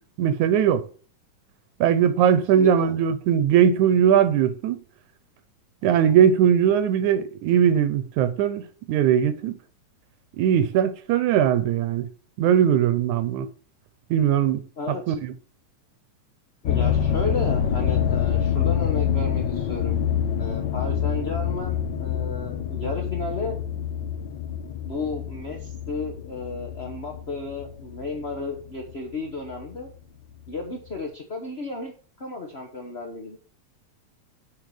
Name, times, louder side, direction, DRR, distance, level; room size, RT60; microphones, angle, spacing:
voice 1, 0.2-0.9 1.8-4.8 5.8-9.6 10.4-12.1 12.4-13.5 14.1-14.6 15.1-15.3, right 9 dB, 85° right, 2.3 m, -20 dB
voice 2, 2.5-2.9 14.8-15.1 16.6-19.9 20.4-23.6 24.9-29.9 30.5-31.9 32.2-33.4, left 3 dB, 45° left, 0.8 m, -33 dB
sound 1, 16.7-28.9 29.5-29.9 30.5-30.6 30.9-31.0, left 8 dB, 85° left, 0.9 m, -26 dB
8.0 x 5.3 x 6.3 m
omnidirectional pair, 3.3 m